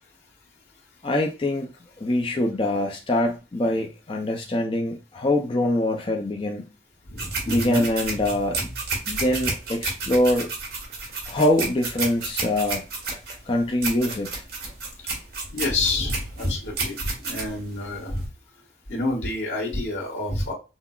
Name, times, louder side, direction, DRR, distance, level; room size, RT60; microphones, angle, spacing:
voice 1, 1.0-1.7 2.0-6.7 7.5-8.7 9.1-10.5 11.3-12.8 13.5-14.4, left 1 dB, 30° left, 0.4 m, -24 dB
voice 2, 7.1-7.8 15.5-18.3 18.9-20.5, left 2 dB, 85° left, 1.5 m, -28 dB
sound 1, 7.2-18.3, right 3 dB, 65° right, 1.4 m, -31 dB
5.6 x 2.0 x 2.3 m
head